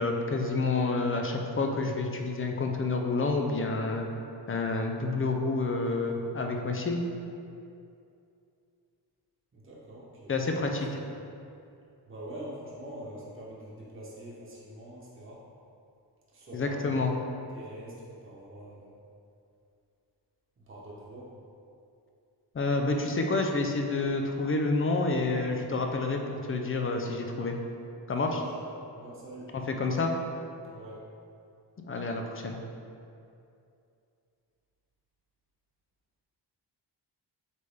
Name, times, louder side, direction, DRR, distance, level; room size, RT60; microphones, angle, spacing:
voice 1, 0.0-4.1 4.5-7.0 10.3-10.9 16.5-17.1 22.5-27.6 28.1-28.3 29.5-30.1 31.9-32.6, left 3 dB, 30° left, 3 dB, 0.5 m, -29 dB
voice 2, 9.5-10.3 11.0-11.1 12.1-15.4 16.3-17.2 17.5-19.0 20.7-21.3 28.1-28.6 29.0-29.5 30.7-31.0, right 1 dB, 30° right, -6 dB, 1.1 m, -44 dB
8.2 x 3.3 x 3.5 m, 2.6 s
wide cardioid pair, 150°, 41 cm